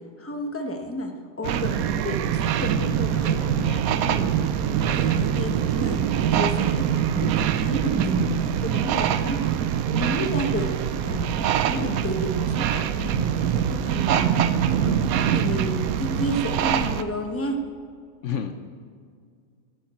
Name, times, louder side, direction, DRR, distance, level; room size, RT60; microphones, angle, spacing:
voice 1, 0.0-3.4 3.9-9.6 9.9-17.6, equal, 10° left, 4 dB, 0.8 m, -31 dB
sound 1, 1.4-17.0, right 9 dB, 75° right, 1.0 m, -24 dB
voice 2, 2.7-3.9 11.7-11.9 18.2-18.5, left 7 dB, 60° left, 8 dB, 0.9 m, -33 dB
sound 2, 16.9-17.5, equal, 45° right, 2.6 m, -44 dB
14.0 x 12.5 x 4.3 m, 2.1 s
omnidirectional pair, 1.6 m